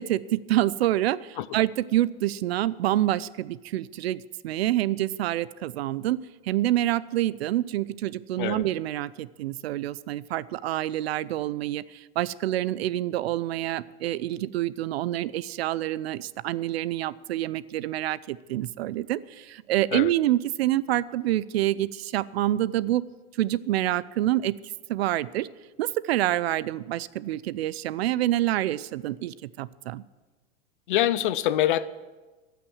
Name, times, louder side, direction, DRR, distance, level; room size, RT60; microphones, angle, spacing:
voice 1, 0.0-6.2 6.4-23.0 23.4-24.6 24.9-25.5 25.8-30.0, right 14 dB, 85° right, 19 dB, 0.6 m, -27 dB
voice 2, 30.9-31.9, left 12 dB, 55° left, 15 dB, 0.6 m, -25 dB
15.5 x 6.0 x 9.4 m, 1.2 s
supercardioid pair, 180°, 30 cm